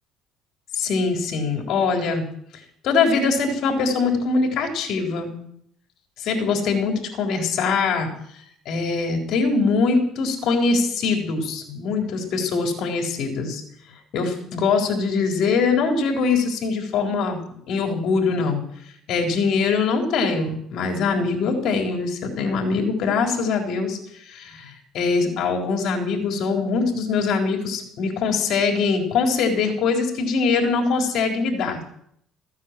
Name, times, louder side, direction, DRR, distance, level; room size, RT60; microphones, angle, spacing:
voice 1, 0.7-2.3 2.8-5.4 6.2-8.1 8.7-13.6 14.1-17.4 17.7-18.6 19.1-31.8, left 4 dB, 60° left, 2 dB, 4.1 m, -22 dB
15.5 x 9.8 x 7.6 m, 0.69 s
cardioid pair, 110°, 0 cm